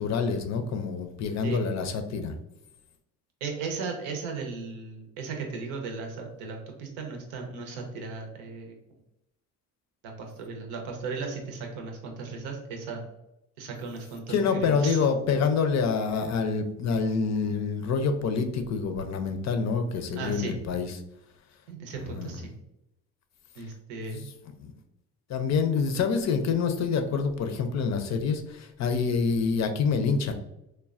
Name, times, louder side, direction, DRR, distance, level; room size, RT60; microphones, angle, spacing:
voice 1, 0.0-2.3 14.3-20.9 22.0-22.4 24.0-24.2 24.6-24.7 25.3-30.3, left 5 dB, 45° left, 7 dB, 0.5 m, -27 dB
voice 2, 3.4-8.8 10.0-13.0 13.6-15.0 20.2-20.5 21.7-22.5 23.6-24.2, right 4 dB, 85° right, 2 dB, 0.7 m, -36 dB
3.2 x 2.1 x 2.3 m, 0.87 s
supercardioid pair, 65°, 40 cm